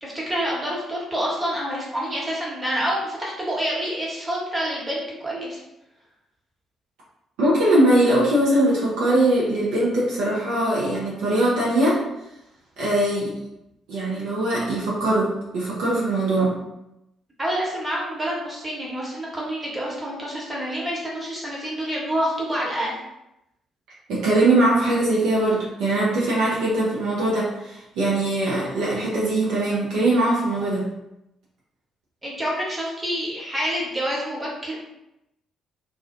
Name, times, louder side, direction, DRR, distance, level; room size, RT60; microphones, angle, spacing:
voice 1, 0.0-5.6 17.4-23.0 32.2-34.8, equal, 20° right, -5 dB, 1.0 m, -27 dB
voice 2, 7.4-12.0 12.8-13.3 13.9-16.6 24.1-30.9, right 1 dB, 65° right, -6 dB, 0.5 m, -21 dB
2.4 x 2.1 x 2.4 m, 0.88 s
figure-of-eight pair, 45°, 0 cm